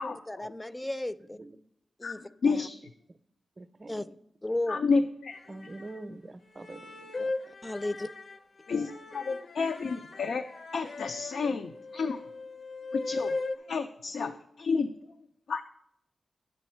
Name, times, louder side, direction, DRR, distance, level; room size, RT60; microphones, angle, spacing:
voice 1, 0.0-1.4 2.0-2.7 3.9-4.0 4.4-4.8 7.6-8.1, left 1 dB, 20° left, 14 dB, 0.4 m, -34 dB
voice 2, 2.0-2.8 4.7-5.7 8.7-10.4 10.7-12.2 12.9-13.3 13.7-14.9 15.5-15.6, left 4 dB, 85° left, 8 dB, 0.4 m, -30 dB
voice 3, 3.6-4.0 5.5-7.3, right 2 dB, 40° right, 13 dB, 0.5 m, -44 dB
sound 1, 5.3-6.0 6.6-13.6, left 3 dB, 65° left, 0.8 m, -38 dB
9.6 x 7.2 x 4.4 m, 0.75 s
cardioid pair, 70°, 0 cm